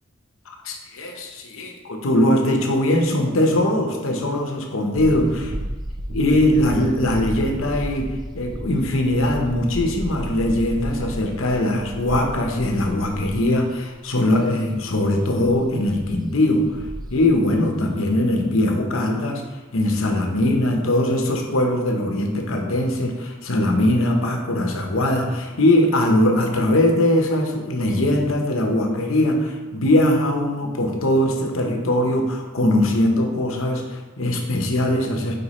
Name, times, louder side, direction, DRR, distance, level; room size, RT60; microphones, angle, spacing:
voice 1, 0.5-5.3 6.1-8.1 8.3-16.7 17.1-19.4 19.7-35.4, left 1 dB, 70° left, 3 dB, 0.9 m, -21 dB
sound 1, 5.0-13.6 13.9-14.0 14.9-15.0 15.3-16.1 16.5-17.6, right 1 dB, 20° right, 0.4 m, -33 dB
4.9 x 4.7 x 4.2 m, 1.2 s
head